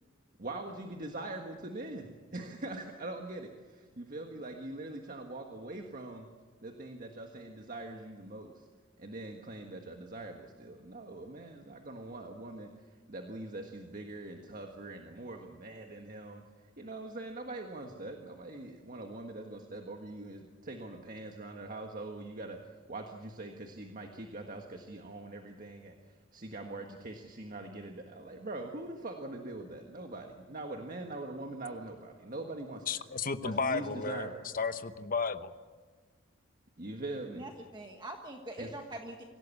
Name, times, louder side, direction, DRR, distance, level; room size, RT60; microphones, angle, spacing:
voice 1, 0.4-6.3 6.6-8.7 9.0-12.7 13.1-16.4 16.8-33.0 33.4-34.4 36.8-37.4 38.6-38.7, right 2 dB, 45° right, 1.6 m, -43 dB
voice 2, 32.9-34.3 34.5-35.5, left 5 dB, 45° left, 1.0 m, -33 dB
voice 3, 37.3-39.2, right 1 dB, 20° right, 1.5 m, -43 dB
25.0 x 17.0 x 8.4 m
head